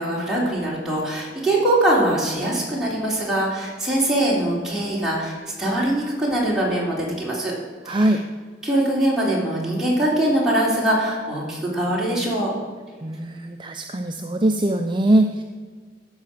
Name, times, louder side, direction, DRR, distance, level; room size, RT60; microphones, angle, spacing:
voice 1, 0.0-7.5 7.9-8.1 8.6-12.5, right 1 dB, 5° right, -6 dB, 3.5 m, -22 dB
voice 2, 7.9-8.2 13.0-15.4, right 1 dB, 25° right, 5 dB, 0.5 m, -21 dB
15.5 x 5.6 x 6.6 m, 1.5 s
head